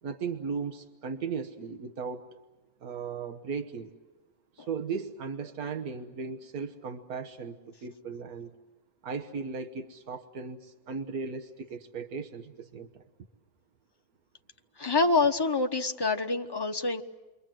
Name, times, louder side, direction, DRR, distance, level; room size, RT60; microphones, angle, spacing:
voice 1, 0.0-2.2 2.8-3.9 4.6-8.5 9.0-13.0, right 5 dB, 85° right, 6 dB, 1.6 m, -37 dB
voice 2, 14.8-17.0, left 3 dB, 20° left, 5 dB, 1.0 m, -26 dB
29.0 x 23.5 x 7.6 m, 1.2 s
omnidirectional pair, 1.5 m